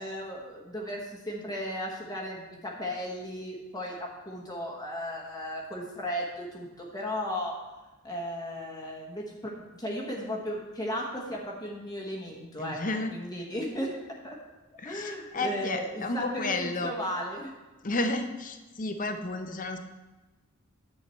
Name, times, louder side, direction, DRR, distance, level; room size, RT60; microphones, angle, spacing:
voice 1, 0.0-7.5 8.0-14.0 14.2-14.4 14.8-17.5, equal, 20° left, -1 dB, 1.2 m, -35 dB
voice 2, 12.6-13.1 14.8-16.9 17.8-19.8, left 2 dB, 40° left, 6 dB, 0.8 m, -32 dB
10.5 x 7.7 x 4.4 m, 1.1 s
head